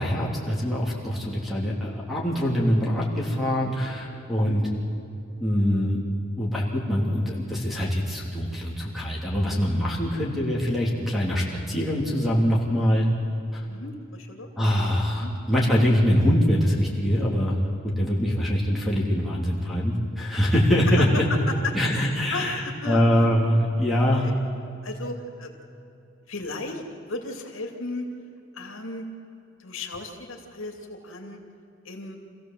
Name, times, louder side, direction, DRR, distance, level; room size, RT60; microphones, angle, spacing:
voice 1, 0.0-4.6 5.4-6.0 6.4-13.1 13.5-13.6 14.6-21.2 21.7-24.3, equal, ahead, -3 dB, 3.1 m, -23 dB
voice 2, 13.7-14.5 15.2-15.3 20.9-21.1 22.3-23.1 24.0-24.3 24.8-25.5 26.3-26.8 27.1-28.1 28.5-29.1 29.6-31.4 31.8-32.2, left 2 dB, 80° left, 2 dB, 2.7 m, -35 dB
26.0 x 16.0 x 7.6 m, 2.8 s
head